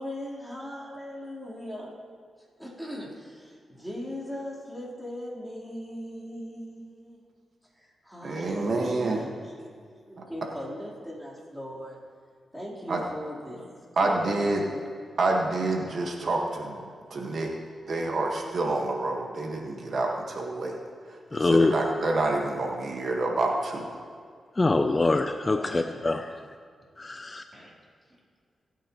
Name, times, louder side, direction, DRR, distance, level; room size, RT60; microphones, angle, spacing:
voice 1, 0.0-2.0 2.6-7.3 7.7-12.0 12.5-14.9 25.4-26.3 27.5-27.8, equal, 5° right, -5 dB, 3.8 m, -39 dB
voice 2, 8.2-9.2 12.9-13.0 14.0-14.6 15.2-17.5 17.9-20.8 21.1-24.0, right 2 dB, 60° right, 0 dB, 1.6 m, -28 dB
voice 3, 21.3-21.7 24.6-26.4 27.0-27.4, left 3 dB, 25° left, 7 dB, 0.5 m, -24 dB
22.5 x 9.2 x 3.1 m, 2.1 s
cardioid pair, 85°, 0 cm